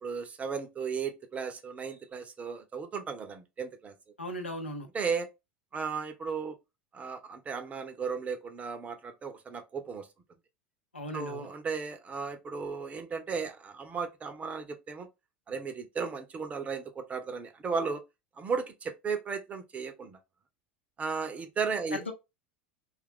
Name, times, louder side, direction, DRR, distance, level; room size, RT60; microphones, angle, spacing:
voice 1, 0.0-3.9 4.9-5.3 5.7-6.6 6.9-10.1 11.1-15.1 15.5-18.0 18.4-20.2 21.0-22.0, right 5 dB, 25° right, 0.6 m, -35 dB
voice 2, 4.2-4.9 10.9-11.5 21.9-22.1, left 1 dB, 85° left, 0.8 m, -37 dB
2.9 x 2.4 x 3.5 m
figure-of-eight pair, 80°, 6 cm